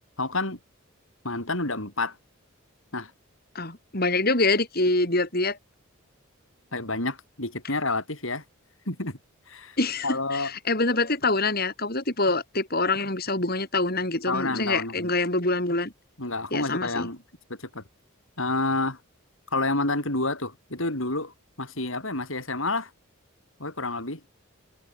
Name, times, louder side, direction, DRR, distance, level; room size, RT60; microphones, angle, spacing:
voice 1, 0.2-0.6 1.2-2.2 2.9-3.1 6.7-8.4 8.9-9.2 9.5-9.8 10.0-10.5 14.3-15.1 16.2-17.2 17.5-17.8 18.4-19.0 19.5-22.9 23.6-24.2, left 2 dB, 70° left, 7.6 m, -29 dB
voice 2, 3.5-5.6 9.8-15.9 16.5-17.1, left 2 dB, 45° left, 6.6 m, -25 dB
head